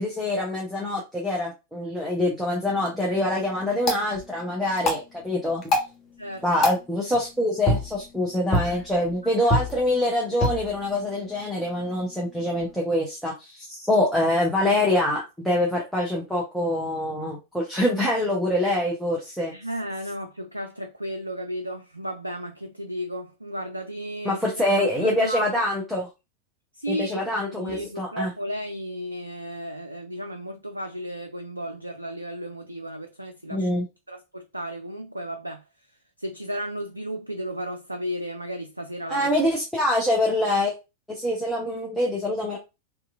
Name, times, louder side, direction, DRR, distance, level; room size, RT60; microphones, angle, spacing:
voice 1, 0.0-5.6 6.4-19.5 24.2-26.1 26.9-28.3 33.5-33.9 39.1-40.7 41.1-42.6, left 1 dB, ahead, 0.8 m, -25 dB
sound 1, 2.7-12.7, left 1 dB, 35° left, 0.9 m, -30 dB
voice 2, 19.5-24.4 24.8-25.6 26.7-27.2 27.5-33.7 34.1-35.6 36.2-39.3, equal, 85° right, 0.3 m, -34 dB
2.9 x 2.4 x 2.4 m
figure-of-eight pair, 90°, 0 cm